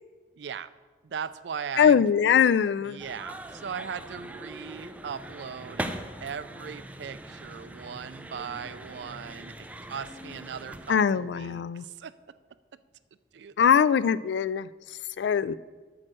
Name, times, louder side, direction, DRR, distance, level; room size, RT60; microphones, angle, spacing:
voice 1, 0.4-0.7 1.0-2.0 2.9-5.9 6.2-12.1 13.3-13.8, right 7 dB, 70° right, 15 dB, 0.4 m, -38 dB
voice 2, 1.8-3.0 10.9-11.8 13.6-14.7 15.2-15.6, left 7 dB, 70° left, 18 dB, 0.3 m, -22 dB
sound 1, 3.0-11.0, right 1 dB, 10° right, 0.5 m, -41 dB
8.6 x 6.5 x 6.2 m, 1.4 s
head